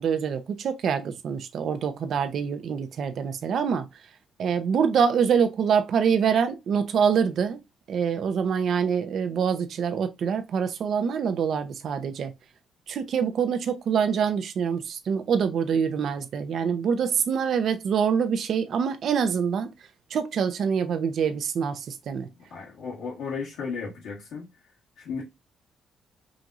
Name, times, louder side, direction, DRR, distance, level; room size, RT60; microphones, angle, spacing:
voice 1, 0.0-3.9 4.4-7.6 7.9-12.3 12.9-19.7 20.1-22.3, right 7 dB, 65° right, 0.7 m, -25 dB
voice 2, 22.5-24.4 25.0-25.2, left 5 dB, 90° left, 1.5 m, -34 dB
5.1 x 3.0 x 2.5 m
cardioid pair, 90°, 0 cm